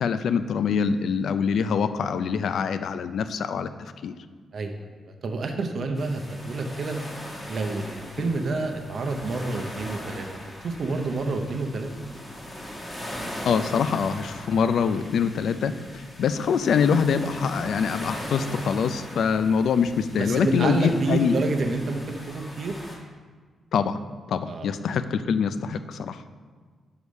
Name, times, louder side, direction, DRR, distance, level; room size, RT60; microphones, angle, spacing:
voice 1, 0.0-3.7 4.0-4.1 13.4-21.3 23.7-24.0 24.3-26.2, left 6 dB, 70° left, 11 dB, 0.3 m, -24 dB
voice 2, 4.5-7.0 7.5-11.9 20.2-22.7 24.5-24.7, right 3 dB, 50° right, 5 dB, 0.7 m, -28 dB
sound 1, 6.0-23.0, equal, 15° left, 1.2 m, -40 dB
5.0 x 4.8 x 5.3 m, 1.5 s
wide cardioid pair, 140°, 0 cm